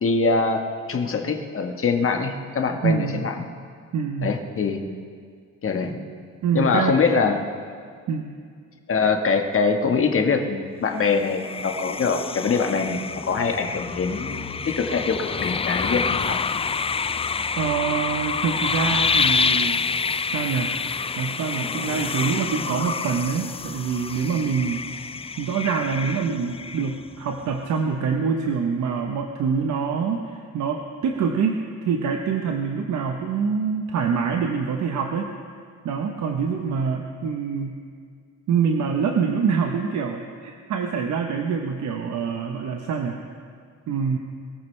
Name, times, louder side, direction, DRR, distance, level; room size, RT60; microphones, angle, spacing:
voice 1, 0.0-3.5 4.2-4.8 5.6-6.0 6.5-7.4 8.9-16.4, left 4 dB, 45° left, 4 dB, 1.5 m, -23 dB
voice 2, 2.8-3.3 3.9-4.3 6.4-7.0 8.1-8.3 17.6-19.8 20.2-20.8 21.2-25.1 25.4-35.3 35.8-37.8 38.5-43.2 43.9-44.2, right 6 dB, 70° right, 3 dB, 1.1 m, -25 dB
sound 1, 11.0-27.3, left 5 dB, 20° left, 0.3 m, -27 dB
22.5 x 14.0 x 3.3 m, 2.1 s
cardioid pair, 90°, 30 cm